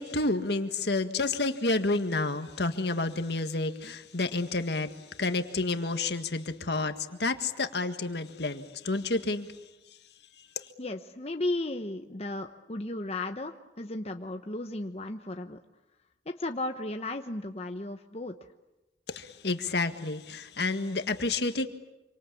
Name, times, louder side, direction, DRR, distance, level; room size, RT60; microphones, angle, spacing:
voice 1, 0.0-4.9 5.2-9.5 10.6-10.7 19.1-21.7, left 3 dB, 70° left, 8 dB, 1.8 m, -30 dB
voice 2, 10.8-15.6 16.4-18.3, left 2 dB, 35° left, 5 dB, 1.0 m, -35 dB
27.5 x 25.0 x 8.5 m, 1.0 s
head